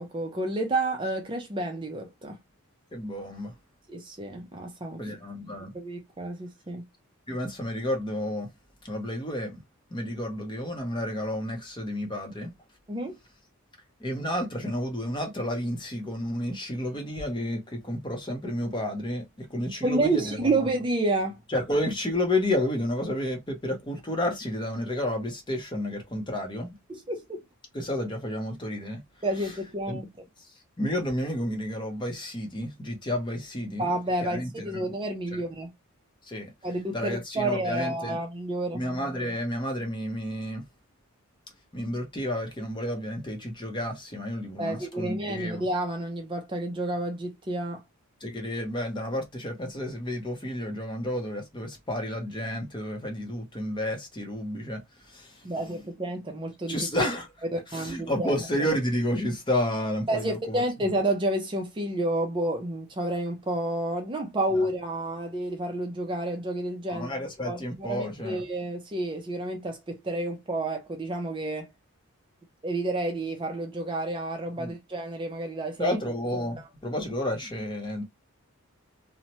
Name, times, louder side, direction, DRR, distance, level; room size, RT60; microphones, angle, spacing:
voice 1, 0.0-2.4 3.9-5.0 5.7-6.8 12.9-13.2 19.8-21.4 26.9-27.4 29.2-30.1 33.8-35.7 36.6-38.8 44.6-47.8 55.4-56.9 57.5-58.3 60.1-67.1 67.4-71.7 72.6-76.0, right 1 dB, 20° right, 0.4 m, -30 dB
voice 2, 2.9-3.5 5.0-5.7 7.3-8.5 8.8-9.6 9.9-12.5 14.0-20.5 21.5-26.7 27.7-29.0 29.4-29.5 29.9-30.0 30.8-33.9 34.2-34.8 36.2-36.5 36.9-38.1 38.7-40.6 41.7-45.6 48.2-54.8 55.1-55.4 56.7-57.3 57.7-60.6 64.5-64.7 66.9-68.4 74.6-74.7 75.8-78.0, left 1 dB, 20° left, 0.7 m, -31 dB
2.9 x 2.1 x 2.8 m
head